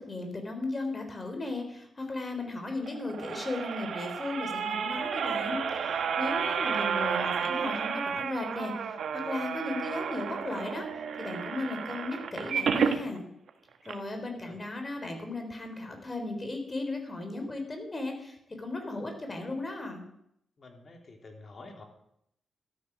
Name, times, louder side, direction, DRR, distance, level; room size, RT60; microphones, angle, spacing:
voice 1, 0.0-13.2 13.8-20.1, left 2 dB, 25° left, 4 dB, 4.4 m, -36 dB
sound 1, 2.8-13.0 13.5-13.6 13.8-13.9, right 7 dB, 80° right, 1.3 m, -31 dB
voice 2, 20.6-21.8, left 2 dB, 45° left, 2 dB, 3.7 m, -48 dB
13.5 x 13.0 x 6.4 m, 0.74 s
cardioid pair, 100°, 0 cm